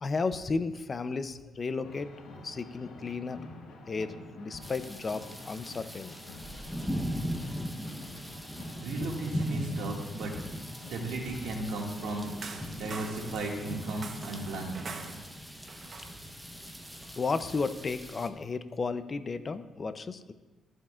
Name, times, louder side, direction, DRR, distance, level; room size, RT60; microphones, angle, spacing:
voice 1, 0.0-2.1 2.4-3.4 3.9-6.2 17.2-20.3, left 4 dB, 35° left, 11 dB, 0.6 m, -33 dB
sound 1, 1.8-15.3, left 2 dB, 85° left, 1.6 m, -49 dB
sound 2, 4.6-18.3, equal, ahead, 0.9 m, -39 dB
voice 2, 8.8-10.3 10.9-12.3 12.7-14.8, right 2 dB, 85° right, -1 dB, 2.1 m, -35 dB
sound 3, 12.2-18.3, right 4 dB, 50° right, 1.0 m, -47 dB
14.5 x 7.3 x 2.5 m, 1.2 s
cardioid pair, 90°, 0 cm